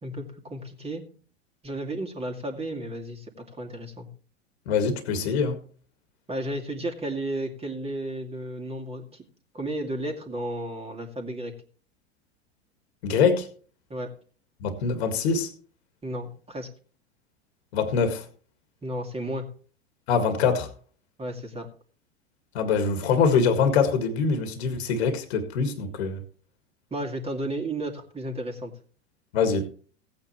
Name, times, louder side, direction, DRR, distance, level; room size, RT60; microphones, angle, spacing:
voice 1, 0.0-1.0 1.6-4.1 6.3-9.2 9.5-11.5 13.9-14.1 16.0-16.7 18.8-19.5 21.2-21.7 26.9-28.7, right 1 dB, 15° right, 2.4 m, -33 dB
voice 2, 4.7-5.6 13.0-13.5 14.6-15.5 17.7-18.3 20.1-20.7 22.5-26.2 29.3-29.7, left 5 dB, 65° left, 1.9 m, -24 dB
16.5 x 8.8 x 3.1 m
hypercardioid pair, 95°, 35 cm